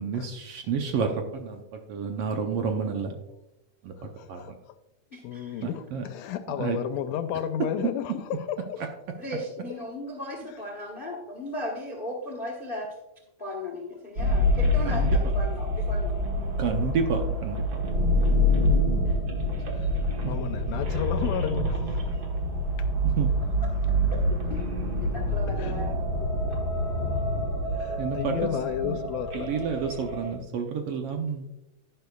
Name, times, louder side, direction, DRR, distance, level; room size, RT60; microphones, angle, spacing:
voice 1, 0.0-1.6 1.9-3.2 3.8-3.9 4.3-4.4 5.9-6.0 6.6-6.8 14.9-15.2 16.6-17.6 18.2-18.5 20.2-20.3 23.2-23.3 28.0-28.5 28.8-29.0 29.3-31.4, right 6 dB, 70° right, 4 dB, 1.5 m, -29 dB
voice 2, 4.0-4.5 5.2-8.8 19.8-19.9 20.3-22.0 24.5-24.6 25.6-25.7 27.7-29.5, left 9 dB, 80° left, 9 dB, 1.8 m, -32 dB
voice 3, 5.1-5.7 9.2-12.9 13.4-16.1 19.0-19.2 24.5-24.6 25.0-26.3 27.9-28.0, left 1 dB, 45° left, 1 dB, 0.6 m, -36 dB
sound 1, 14.2-30.3, equal, 45° right, 1.4 m, -26 dB
11.0 x 10.5 x 2.3 m, 0.90 s
omnidirectional pair, 3.3 m